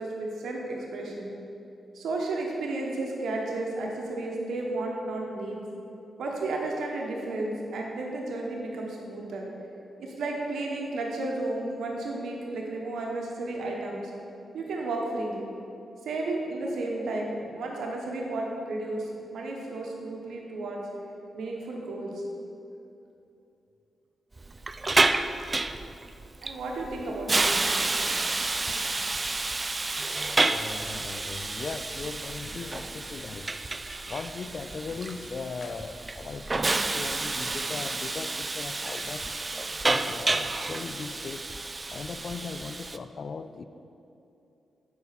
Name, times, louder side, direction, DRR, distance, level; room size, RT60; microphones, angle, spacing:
voice 1, 0.0-1.3 1.9-5.6 6.2-9.5 10.0-14.1 14.5-15.5 16.0-20.8 21.3-22.2 26.4-27.6, right 2 dB, 80° right, 0 dB, 1.1 m, -33 dB
Hiss, 24.4-43.0, right 3 dB, 35° right, 0.3 m, -30 dB
voice 2, 30.5-33.5 34.1-39.3 39.8-41.5 41.9-43.6, left 5 dB, 60° left, 11 dB, 0.3 m, -38 dB
7.9 x 5.7 x 4.1 m, 2.8 s
supercardioid pair, 50°, 0 cm